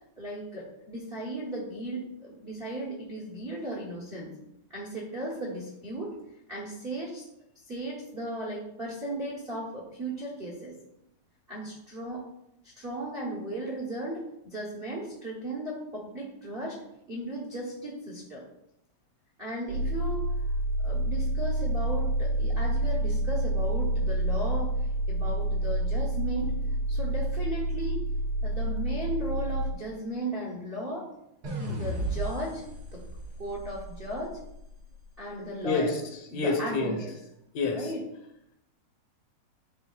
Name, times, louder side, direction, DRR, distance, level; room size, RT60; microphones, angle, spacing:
voice 1, 0.2-4.3 4.7-6.1 6.5-7.3 7.7-10.7 11.5-12.2 12.8-16.8 17.1-18.4 19.4-20.2 20.8-24.7 25.1-26.5 26.9-28.0 28.4-31.0 31.6-32.6 32.9-33.0 33.4-34.4 35.2-36.0 36.3-37.1 37.7-38.1, right 1 dB, 50° right, -4 dB, 0.6 m, -36 dB
sound 1, 19.7-29.7, right 1 dB, 65° right, 1.8 m, -28 dB
sound 2, 31.4-34.7, right 2 dB, 85° right, 0.8 m, -35 dB
voice 2, 35.6-35.9 36.3-37.0 37.6-37.8, left 3 dB, 75° left, 3 dB, 2.1 m, -27 dB
10.5 x 3.8 x 2.4 m, 0.81 s
omnidirectional pair, 3.4 m